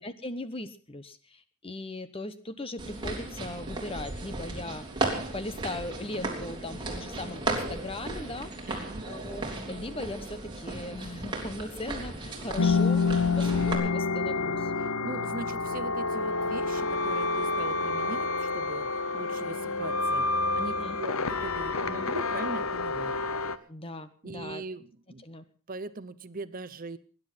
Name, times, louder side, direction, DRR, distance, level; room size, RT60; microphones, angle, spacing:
voice 1, 0.0-4.9 5.3-14.7 20.7-21.0 23.7-24.6 25.2-25.5, left 2 dB, 25° left, 12 dB, 1.1 m, -39 dB
sound 1, 2.8-13.7, right 2 dB, 20° right, 3.4 m, -35 dB
voice 2, 8.7-9.0 14.8-23.2 24.2-25.2 25.7-27.0, right 3 dB, 40° right, 14 dB, 0.7 m, -40 dB
sound 2, 12.6-23.6, left 3 dB, 75° left, 0.9 m, -28 dB
20.5 x 10.5 x 5.7 m, 0.41 s
head